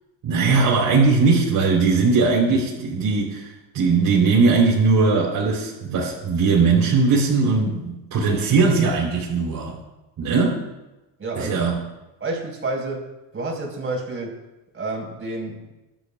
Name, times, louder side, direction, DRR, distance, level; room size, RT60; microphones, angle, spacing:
voice 1, 0.2-9.7 10.2-10.6 11.4-11.7, right 4 dB, 55° right, -6 dB, 4.0 m, -19 dB
voice 2, 11.2-11.6 12.2-14.4 14.7-15.7, right 2 dB, 30° right, 0 dB, 5.0 m, -29 dB
24.5 x 12.0 x 2.5 m, 1.0 s
cardioid pair, 110°, 41 cm